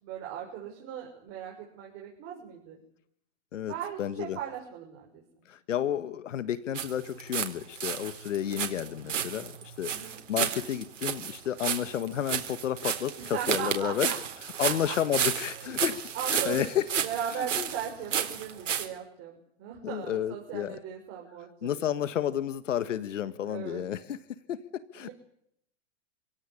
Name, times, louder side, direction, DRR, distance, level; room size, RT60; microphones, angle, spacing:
voice 1, 0.0-2.8 3.6-5.2 9.8-10.2 13.3-14.2 14.6-14.9 16.1-16.6 17.0-21.9 23.4-23.8 24.9-25.1, right 9 dB, 40° right, -1 dB, 6.4 m, -38 dB
voice 2, 4.0-4.4 5.5-14.2 14.6-16.8 17.3-17.7 19.8-20.8 21.6-24.2 24.5-25.1, left 10 dB, 85° left, 14 dB, 1.6 m, -31 dB
sound 1, 6.7-7.5 7.8-18.9, right 8 dB, 85° right, 4.1 m, -32 dB
28.0 x 17.5 x 9.9 m, 0.73 s
hypercardioid pair, 135°, 36 cm